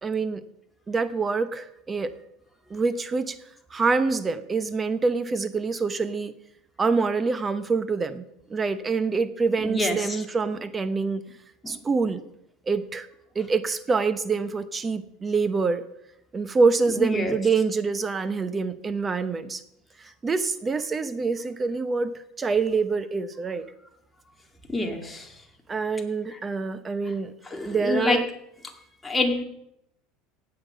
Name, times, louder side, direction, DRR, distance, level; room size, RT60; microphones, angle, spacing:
voice 1, 0.0-0.4 0.9-2.1 2.7-3.4 3.7-6.3 6.8-8.2 8.5-11.2 11.7-12.2 12.7-13.1 13.3-15.8 16.3-19.6 20.0-23.6 25.7-27.3 27.6-28.3, right 4 dB, 20° right, 12 dB, 0.9 m, -26 dB
voice 2, 9.6-10.2 11.6-11.7 17.0-17.3 24.7-25.3 27.5-28.2 29.0-29.4, left 2 dB, 10° left, 2 dB, 2.1 m, -26 dB
16.5 x 8.8 x 5.6 m, 0.80 s
supercardioid pair, 125°, 0 cm